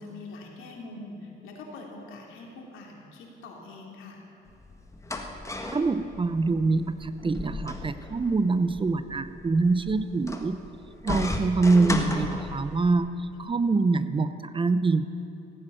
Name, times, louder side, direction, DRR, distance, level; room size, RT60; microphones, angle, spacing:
voice 1, 0.0-4.2 13.4-13.5, left 2 dB, 85° left, 0 dB, 2.9 m, -43 dB
sound 1, 4.5-12.9, left 2 dB, 15° left, 1.6 m, -35 dB
voice 2, 5.7-10.6 11.0-15.0, right 3 dB, 25° right, 12 dB, 0.7 m, -25 dB
16.0 x 9.8 x 9.0 m, 2.9 s
cardioid pair, 90°, 20 cm